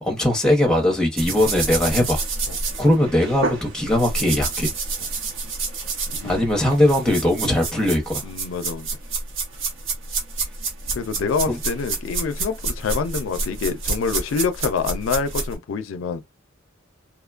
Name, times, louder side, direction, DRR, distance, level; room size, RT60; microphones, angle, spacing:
voice 1, 0.0-2.2 2.8-4.7 6.2-8.2 11.5-11.6, left 1 dB, 5° left, 0.7 m, -20 dB
sound 1, 1.2-15.6, right 3 dB, 85° right, 0.8 m, -29 dB
voice 2, 6.1-6.4 8.2-9.0 10.9-16.2, left 5 dB, 80° left, 0.4 m, -26 dB
2.9 x 2.1 x 2.4 m
head